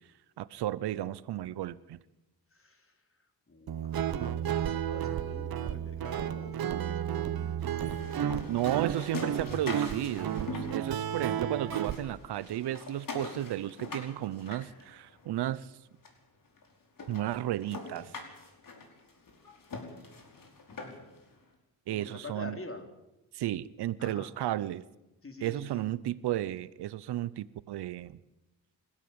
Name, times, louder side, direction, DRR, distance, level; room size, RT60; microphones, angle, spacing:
voice 1, 0.4-2.0 8.5-15.8 17.1-18.2 21.9-22.6 23.3-24.8 25.4-28.2, right 13 dB, 80° right, 19 dB, 0.8 m, -33 dB
voice 2, 2.5-8.6 20.7-21.0 21.9-22.9 24.0-24.3 25.2-25.8, left 2 dB, 35° left, 5 dB, 4.1 m, -47 dB
Guitar, 3.7-12.0, right 9 dB, 65° right, 1.2 m, -33 dB
sound 1, 7.6-11.3 11.6-15.4 16.0-16.1 16.6-16.7 17.0-21.2, left 3 dB, 55° left, 5.1 m, -43 dB
26.5 x 13.0 x 8.8 m, 0.97 s
cardioid pair, 65°, 39 cm